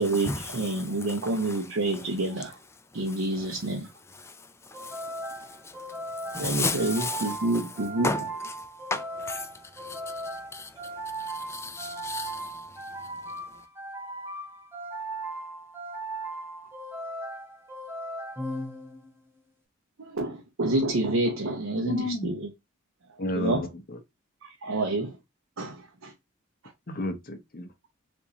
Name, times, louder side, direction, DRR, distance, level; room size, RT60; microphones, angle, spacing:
voice 1, 0.0-2.6 2.9-3.9 6.4-8.2 20.0-22.5 23.3-23.6 24.4-25.2 25.6-26.1, right 2 dB, 65° right, 0.7 m, -28 dB
sound 1, 4.7-19.3, right 1 dB, 10° right, 0.8 m, -38 dB
voice 2, 6.3-7.2 8.0-8.2 8.9-9.5 9.8-10.0 10.5-10.7 11.3-12.5, left 3 dB, 10° left, 0.3 m, -31 dB
voice 3, 21.7-22.3 23.2-24.0 26.9-27.7, left 2 dB, 45° left, 0.7 m, -32 dB
3.6 x 2.6 x 2.8 m
head